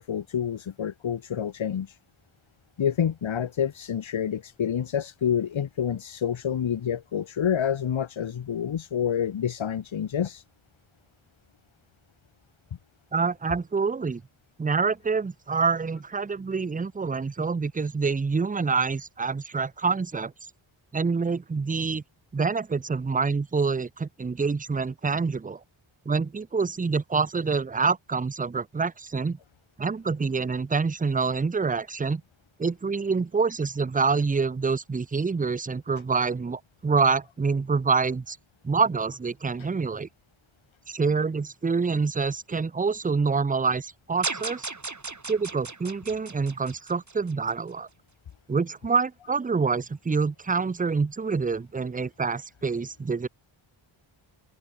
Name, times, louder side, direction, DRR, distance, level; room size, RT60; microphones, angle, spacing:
voice 1, 0.0-2.0 2.8-10.4, left 8 dB, 70° left, 1.5 m, -28 dB
voice 2, 13.1-14.2 14.6-20.3 20.9-22.0 22.3-25.6 26.1-29.4 29.8-32.2 32.6-38.4 38.6-40.1 40.9-44.7 45.3-47.9 48.5-53.3, right 4 dB, 20° right, 0.5 m, -26 dB
sound 1, 44.2-47.5, right 3 dB, 35° right, 5.5 m, -36 dB
wide cardioid pair, 95°, 49 cm